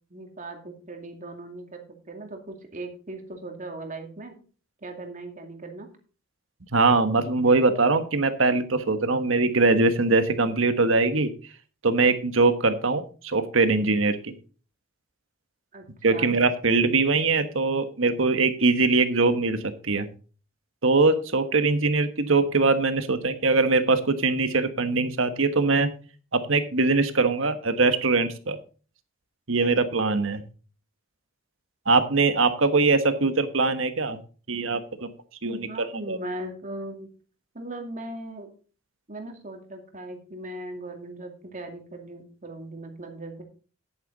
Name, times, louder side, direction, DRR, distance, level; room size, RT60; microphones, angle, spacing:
voice 1, 0.1-4.3 4.8-5.9 15.7-16.4 33.2-33.3 35.4-37.1 37.5-38.5 39.1-43.4, right 2 dB, 40° right, 3 dB, 2.4 m, -38 dB
voice 2, 6.7-11.3 11.8-14.3 16.0-20.1 20.8-25.9 26.3-28.6 29.5-30.4 31.9-34.2 34.5-35.1 35.4-36.2, right 3 dB, 80° right, 9 dB, 1.4 m, -22 dB
10.5 x 9.1 x 4.1 m, 0.38 s
head